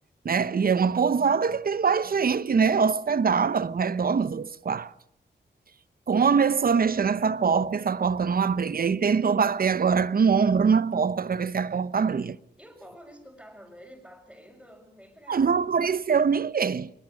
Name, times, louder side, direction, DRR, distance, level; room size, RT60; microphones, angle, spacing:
voice 1, 0.2-4.9 6.1-12.4 15.3-16.9, right 6 dB, 50° right, 0.8 m, -23 dB
voice 2, 12.6-15.9, equal, ahead, 5.1 m, -49 dB
21.0 x 21.0 x 6.4 m
wide cardioid pair, 100°, 19 cm